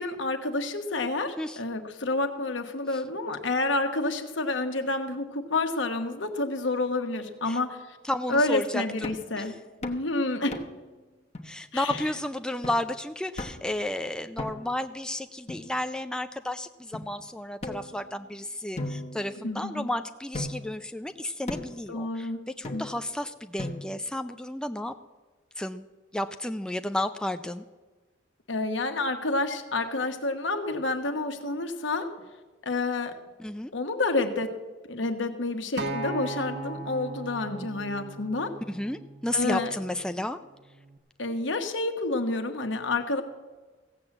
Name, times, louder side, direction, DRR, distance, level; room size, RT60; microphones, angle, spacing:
voice 1, 0.0-8.0 8.3-9.6 9.8-10.6 11.7-12.0 19.4-19.9 21.9-22.4 22.7-22.8 28.5-32.1 32.6-33.2 33.7-34.6 34.9-38.6 39.3-39.7 41.2-43.2, left 2 dB, 75° left, 6 dB, 1.3 m, -29 dB
voice 2, 8.0-9.1 9.4-9.5 11.4-24.9 25.6-25.8 26.1-27.6 33.4-33.7 38.7-40.4, left 1 dB, 5° left, 8 dB, 0.4 m, -32 dB
sound 1, 9.0-9.3 9.8-10.1 10.5-10.9 11.3-11.4 11.9-12.1 12.6-12.9 13.4-13.7 14.4-14.8 15.5-16.2 16.9-17.1 17.6-18.3 18.8-19.8 20.3-20.8 21.5-21.8 22.6-23.1 23.6-24.1, left 1 dB, 35° left, 1.0 m, -38 dB
Acoustic guitar, 35.8-40.0 40.9-41.0, right 2 dB, 60° right, 1.1 m, -37 dB
16.0 x 7.4 x 7.7 m, 1.3 s
head